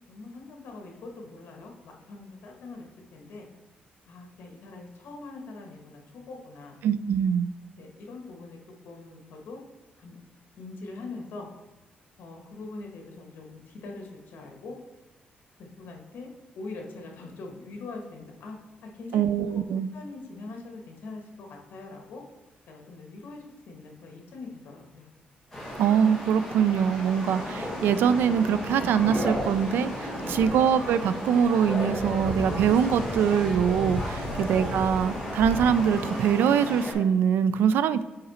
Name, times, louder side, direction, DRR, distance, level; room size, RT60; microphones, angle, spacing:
voice 1, 0.1-3.5 4.0-6.8 7.8-8.6 8.8-9.6 10.0-10.2 10.6-11.5 12.2-14.8 15.6-16.3 16.5-18.5 18.9-19.2 19.5-22.2 22.7-25.1 30.2-30.4 34.2-34.5, left 3 dB, 70° left, 2 dB, 1.5 m, -42 dB
voice 2, 6.8-7.5 19.1-19.9 25.8-38.0, right 8 dB, 90° right, 14 dB, 0.4 m, -23 dB
sound 1, 25.5-36.9, equal, 5° left, 2.2 m, -33 dB
8.6 x 3.9 x 4.2 m, 1.1 s
cardioid pair, 165°, 3 cm